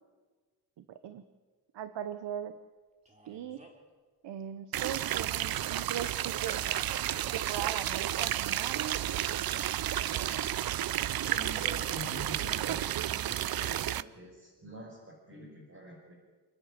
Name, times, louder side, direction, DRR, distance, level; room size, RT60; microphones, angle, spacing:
voice 1, 0.8-1.2 1.7-2.6 3.2-3.6 4.2-6.6 7.3-8.9, right 9 dB, 90° right, 11 dB, 1.0 m, -39 dB
Male speech man speaking, 3.1-3.9 6.4-7.3, equal, 15° right, 3.3 m, -56 dB
sound 1, 4.7-14.0, right 12 dB, 60° right, 0.6 m, -32 dB
voice 2, 10.9-16.1, equal, 30° right, -4 dB, 5.4 m, -46 dB
28.0 x 10.0 x 9.8 m, 1.4 s
wide cardioid pair, 140°, 41 cm